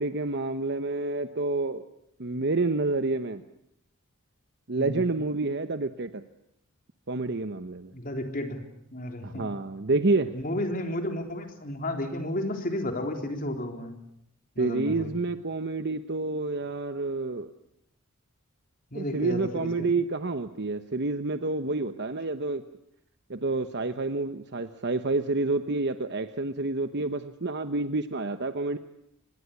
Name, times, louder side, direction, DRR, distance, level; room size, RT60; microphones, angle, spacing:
voice 1, 0.0-1.8 2.2-3.4 4.7-6.2 7.1-7.9 9.2-10.3 14.6-17.5 18.9-22.6 23.3-28.8, right 3 dB, 50° right, 9 dB, 1.0 m, -28 dB
voice 2, 7.9-8.6 8.9-9.5 10.3-14.0 14.6-15.1 18.9-19.9, left 1 dB, 40° left, 4 dB, 3.7 m, -32 dB
25.5 x 21.5 x 8.5 m, 0.76 s
head